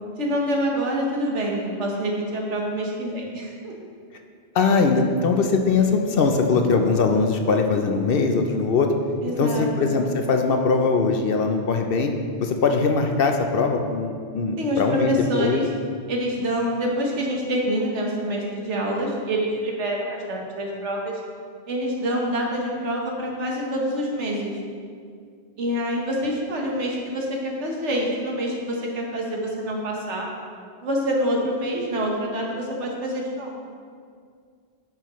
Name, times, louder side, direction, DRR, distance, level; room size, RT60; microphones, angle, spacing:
voice 1, 0.2-3.7 9.2-9.9 14.6-15.6 16.1-21.1 21.7-24.5 25.6-30.3 30.8-33.7, equal, 80° right, -1 dB, 1.5 m, -26 dB
voice 2, 4.5-8.9 9.3-12.1 12.4-15.1 15.4-15.6, left 4 dB, 60° left, 4 dB, 0.7 m, -21 dB
10.0 x 6.0 x 3.1 m, 2.1 s
omnidirectional pair, 1.2 m